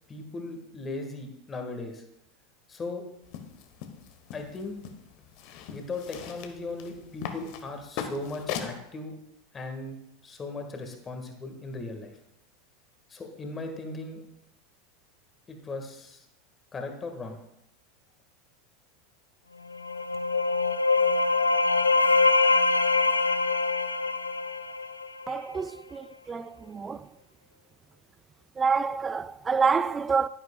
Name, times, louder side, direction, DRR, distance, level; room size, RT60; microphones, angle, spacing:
voice 1, 0.1-2.0 2.7-3.0 4.3-4.8 5.7-9.1 9.5-12.1 13.1-14.2 15.5-16.2 16.7-17.4, left 2 dB, 20° left, 1.6 m, -37 dB
sound 1, 3.2-8.8, left 8 dB, 50° left, 1.0 m, -40 dB
sound 2, 19.7-25.4, left 3 dB, 85° left, 0.4 m, -24 dB
voice 2, 25.3-27.1 28.6-30.3, right 5 dB, 20° right, 0.3 m, -27 dB
11.5 x 10.0 x 2.3 m
figure-of-eight pair, 80°, 0 cm